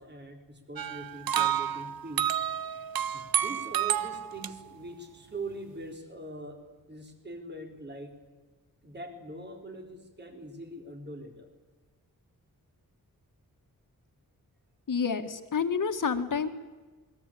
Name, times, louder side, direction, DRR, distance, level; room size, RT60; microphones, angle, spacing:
voice 1, 0.0-2.3 2.7-2.9 3.1-6.6 6.9-8.2 8.8-11.5, right 2 dB, 30° right, 4 dB, 3.8 m, -42 dB
sound 1, 0.8-4.5, right 9 dB, 90° right, 0.8 m, -30 dB
voice 2, 14.9-16.5, left 6 dB, 65° left, 7 dB, 2.1 m, -29 dB
27.5 x 22.0 x 8.7 m, 1.3 s
wide cardioid pair, 170°, 35 cm